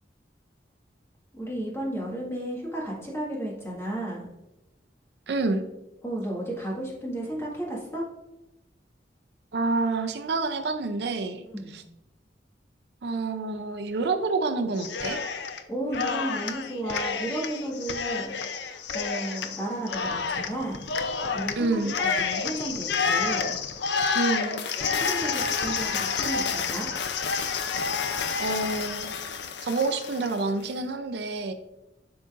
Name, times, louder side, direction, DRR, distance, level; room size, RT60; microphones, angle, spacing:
voice 1, 1.3-4.3 6.0-8.1 11.5-11.7 15.7-20.9 21.2-23.6 23.9-24.2 24.8-26.9, right 1 dB, 15° left, -4 dB, 1.7 m, -33 dB
voice 2, 5.3-5.6 9.5-11.4 11.7-11.8 13.0-15.2 21.6-22.0 24.1-24.6 28.4-31.5, right 3 dB, 65° right, 6 dB, 0.5 m, -28 dB
Cheering, 14.8-15.6 15.9-30.4, left 5 dB, 70° left, 0.5 m, -29 dB
11.5 x 3.9 x 2.5 m, 0.96 s
head